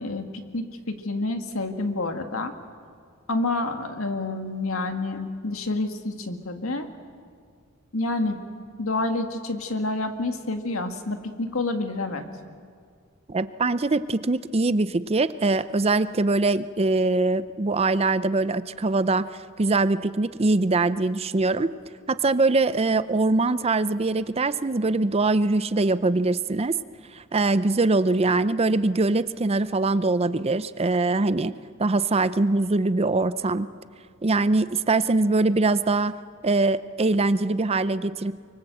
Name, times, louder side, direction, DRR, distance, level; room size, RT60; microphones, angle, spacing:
voice 1, 0.0-2.5 3.3-6.9 7.9-8.4 8.8-12.2, left 2 dB, 75° left, 6 dB, 1.9 m, -28 dB
voice 2, 13.3-19.3 19.6-21.7 22.1-26.8 27.1-31.5 31.8-33.7 34.2-36.1 36.4-38.3, right 3 dB, 30° right, 14 dB, 0.5 m, -22 dB
24.5 x 24.0 x 7.8 m, 2.1 s
head